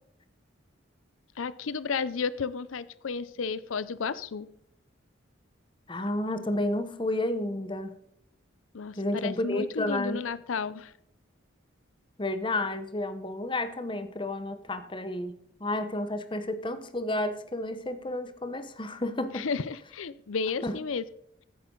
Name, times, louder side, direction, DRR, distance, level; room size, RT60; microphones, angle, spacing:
voice 1, 1.4-4.5 8.7-10.9 19.3-21.0, left 5 dB, 85° left, 0.5 m, -32 dB
voice 2, 5.9-7.9 9.0-10.2 12.2-19.5 20.6-20.8, left 1 dB, 25° left, 1.0 m, -31 dB
15.0 x 8.7 x 3.9 m
head